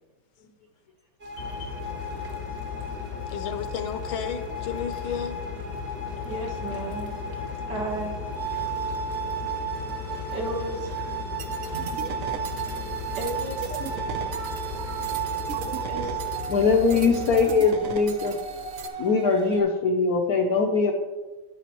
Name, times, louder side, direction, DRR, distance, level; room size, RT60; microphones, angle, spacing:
sound 1, 1.2-19.6, right 4 dB, 40° right, 1.1 m, -34 dB
voice 1, 1.4-1.8 3.3-5.4, left 7 dB, 80° left, 8 dB, 1.5 m, -33 dB
sound 2, 1.4-17.5, left 5 dB, 35° left, 0.7 m, -37 dB
voice 2, 6.2-7.1 7.7-8.2 8.5-8.7 10.3-11.4 12.6-12.9 13.2-13.8 15.9-16.2 16.9-17.0, right 2 dB, 60° right, 1 dB, 1.9 m, -34 dB
sound 3, 11.4-18.9, right 6 dB, 85° right, 0.7 m, -38 dB
voice 3, 16.5-18.4 19.0-20.9, left 4 dB, 65° left, 2 dB, 0.9 m, -21 dB
10.0 x 8.5 x 3.0 m, 1.2 s
omnidirectional pair, 2.3 m